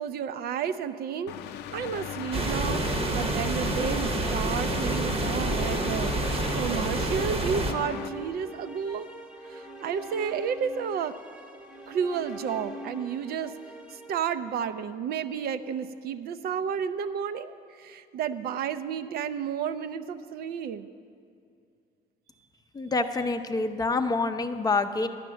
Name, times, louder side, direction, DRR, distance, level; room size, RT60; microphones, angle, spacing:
voice 1, 0.0-2.8 3.1-9.1 9.5-11.1 11.9-13.5 13.9-20.9, right 7 dB, 65° right, 11 dB, 0.5 m, -32 dB
sound 1, 1.3-8.1, left 10 dB, 80° left, 0.5 m, -37 dB
sound 2, 2.3-7.7, right 2 dB, 35° right, 0.9 m, -28 dB
sound 3, 4.8-15.0, right 1 dB, 5° right, 1.0 m, -43 dB
voice 2, 22.7-25.1, left 3 dB, 20° left, 8 dB, 0.5 m, -27 dB
11.5 x 5.9 x 9.1 m, 2.4 s
cardioid pair, 110°, 17 cm